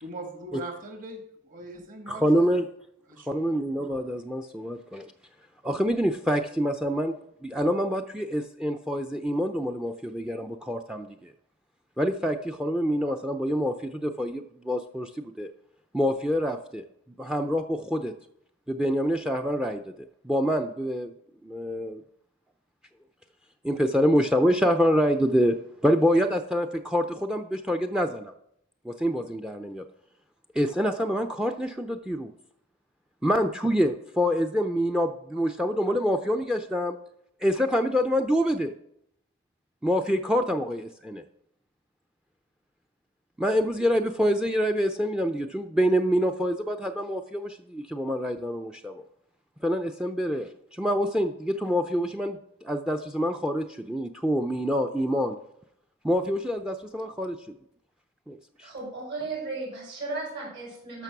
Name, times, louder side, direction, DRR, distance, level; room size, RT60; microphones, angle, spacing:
voice 1, 0.0-2.4 3.1-3.5, right 1 dB, 45° right, 4 dB, 1.8 m, -40 dB
voice 2, 2.1-2.6 3.3-5.1 5.6-7.2 7.4-11.3 12.0-15.5 15.9-16.8 17.2-18.1 18.7-19.8 20.2-21.1 21.4-22.0 23.6-25.6 25.8-28.3 28.8-29.8 30.6-32.3 33.2-37.0 37.4-38.7 39.8-41.2 43.4-49.0 49.6-55.4 56.0-57.4 58.3-58.7, equal, 5° right, 7 dB, 0.4 m, -26 dB
voice 3, 58.6-61.0, right 3 dB, 60° right, -4 dB, 5.2 m, -35 dB
12.5 x 6.0 x 6.0 m, 0.75 s
head